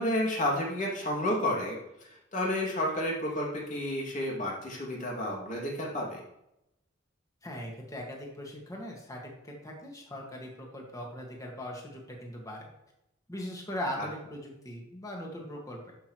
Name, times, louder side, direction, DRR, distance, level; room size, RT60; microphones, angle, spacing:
voice 1, 0.0-1.8 2.3-6.2 14.0-14.1, left 1 dB, 40° left, -3 dB, 2.5 m, -31 dB
voice 2, 7.4-12.7 13.3-15.9, equal, 20° left, -1 dB, 1.9 m, -40 dB
11.5 x 6.0 x 3.2 m, 0.85 s
head